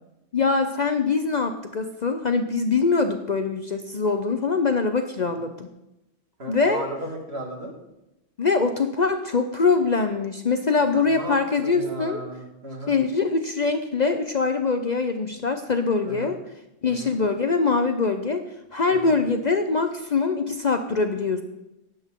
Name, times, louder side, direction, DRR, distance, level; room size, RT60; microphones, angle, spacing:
voice 1, 0.3-5.7 6.5-6.8 8.4-12.2 12.9-16.4 16.8-18.5 18.7-21.4, left 4 dB, 45° left, 7 dB, 0.7 m, -23 dB
voice 2, 6.4-7.7 10.9-13.0 16.1-16.3 16.9-17.1 18.9-19.2, right 1 dB, 60° right, 1 dB, 2.4 m, -35 dB
17.5 x 7.9 x 3.7 m, 0.92 s
omnidirectional pair, 1.2 m